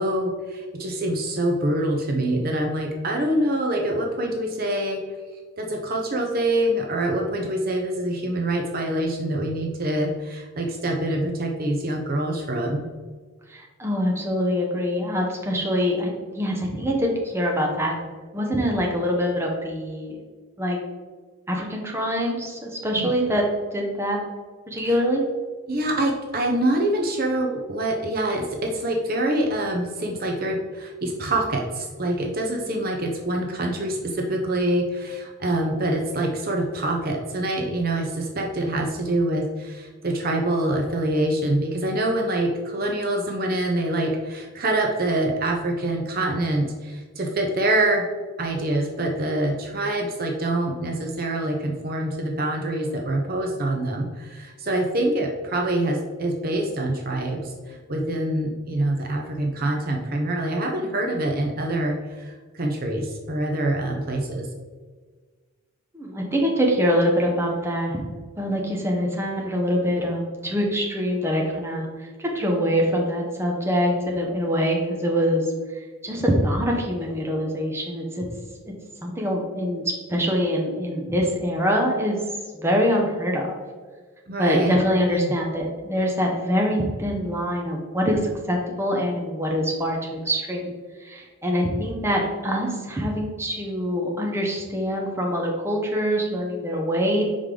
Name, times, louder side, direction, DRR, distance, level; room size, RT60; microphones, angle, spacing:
voice 1, 0.0-5.0 5.6-12.9 22.9-23.1 24.8-24.9 25.7-48.0 48.4-64.5 84.3-85.3, right 1 dB, 45° right, 1 dB, 0.6 m, -25 dB
voice 2, 13.5-18.0 18.3-20.1 20.6-20.8 21.5-23.4 23.7-24.2 24.7-25.2 65.9-68.0 68.4-75.5 75.7-78.2 79.0-82.2 82.5-83.4 84.4-90.7 91.0-97.2, equal, 10° right, -1 dB, 0.8 m, -24 dB
5.2 x 4.9 x 3.7 m, 1.4 s
head